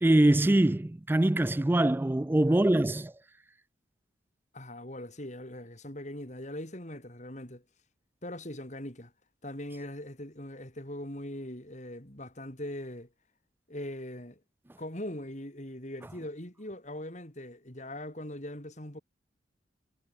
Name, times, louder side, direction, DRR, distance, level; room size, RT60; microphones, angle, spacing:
voice 1, 0.0-3.1, right 1 dB, 10° right, 0.3 m, -23 dB
voice 2, 4.5-7.6 8.2-9.1 9.4-13.1 13.7-14.4 14.8-19.0, left 1 dB, 40° left, 4.5 m, -41 dB
head